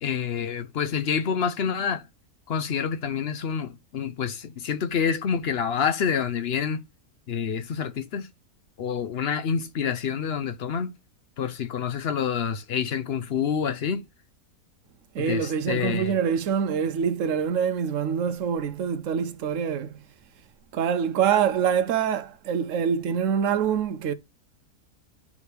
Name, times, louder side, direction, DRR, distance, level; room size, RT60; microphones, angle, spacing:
voice 1, 0.0-2.0 2.5-6.8 7.3-8.3 8.8-10.9 11.4-14.0 15.2-16.1, left 7 dB, 55° left, 0.7 m, -27 dB
voice 2, 15.1-19.9 20.7-24.1, right 7 dB, 65° right, 0.9 m, -25 dB
9.4 x 4.9 x 3.3 m
omnidirectional pair, 1.6 m